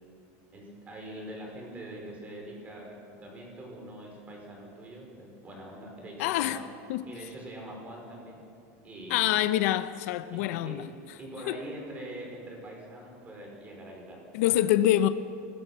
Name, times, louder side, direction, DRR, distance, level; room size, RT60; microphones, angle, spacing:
voice 1, 0.5-6.7 7.1-8.5 8.8-9.5 10.3-10.4 10.7-10.9 11.2-14.6, right 1 dB, 20° right, 5.5 m, -43 dB
voice 2, 6.2-6.6 6.9-7.0 9.1-10.8 11.5-11.6 14.3-15.1, left 13 dB, 70° left, 0.9 m, -25 dB
25.0 x 20.5 x 5.8 m
supercardioid pair, 165°, 8 cm